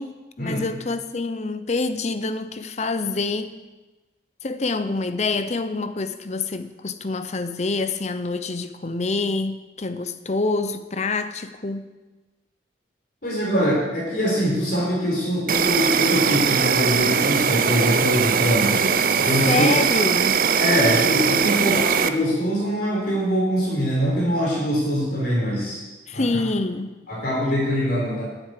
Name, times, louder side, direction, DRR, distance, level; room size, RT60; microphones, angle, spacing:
voice 1, 0.0-3.5 4.4-11.9 19.5-20.4 21.5-21.8 26.1-27.0, left 3 dB, 40° left, 11 dB, 0.6 m, -26 dB
voice 2, 13.2-19.7 20.6-25.8 26.1-26.3 27.1-28.2, equal, 55° left, -4 dB, 4.1 m, -23 dB
Insect, 15.5-22.1, right 6 dB, 50° right, 0.5 m, -20 dB
9.1 x 8.1 x 8.3 m, 1.2 s
head